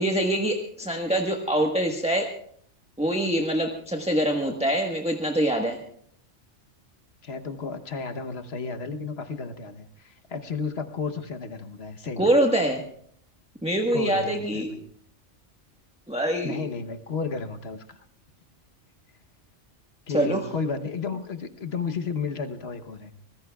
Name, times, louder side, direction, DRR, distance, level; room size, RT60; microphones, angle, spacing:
voice 1, 0.0-2.3 3.0-5.8 12.2-12.8 13.6-14.7 16.1-16.6 20.1-20.4, right 1 dB, 5° right, 2 dB, 1.2 m, -24 dB
voice 2, 7.2-12.3 13.9-14.8 16.4-18.0 20.1-23.1, left 5 dB, 60° left, 8 dB, 1.2 m, -33 dB
24.5 x 19.5 x 2.3 m, 0.63 s
omnidirectional pair, 1.2 m